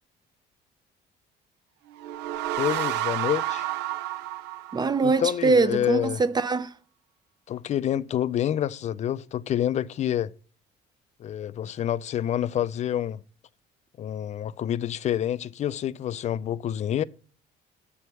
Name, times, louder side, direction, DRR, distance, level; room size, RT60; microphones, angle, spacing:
sound 1, 1.9-5.4, right 13 dB, 90° right, 0.5 m, -30 dB
voice 1, 2.6-3.6 5.0-6.2 7.5-10.3 11.2-13.2 14.0-17.0, left 10 dB, 45° left, 0.4 m, -27 dB
voice 2, 4.7-6.7, right 4 dB, 25° right, 0.5 m, -23 dB
7.1 x 4.5 x 6.7 m
cardioid pair, 110°, 17 cm